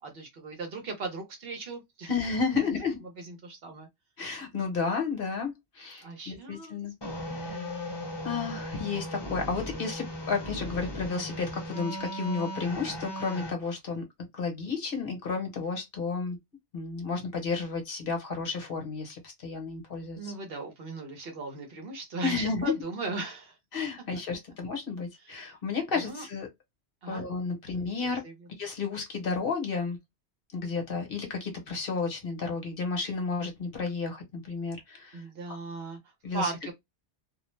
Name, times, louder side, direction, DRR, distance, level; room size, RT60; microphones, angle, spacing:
voice 1, 0.0-2.1 3.2-3.9 6.0-6.8 7.3-7.7 20.1-23.6 25.2-25.3 25.9-26.2 27.0-27.2 27.7-28.3 35.1-36.7, right 3 dB, 60° right, 0.9 m, -38 dB
voice 2, 2.1-3.0 4.2-7.7 8.2-14.0 14.3-16.4 16.7-20.3 22.2-22.8 23.7-26.5 27.1-28.2 28.6-30.0 30.5-35.6 36.2-36.7, left 4 dB, 55° left, 1.0 m, -32 dB
sound 1, 7.0-13.5, equal, 25° left, 0.7 m, -37 dB
2.4 x 2.0 x 3.1 m
omnidirectional pair, 1.2 m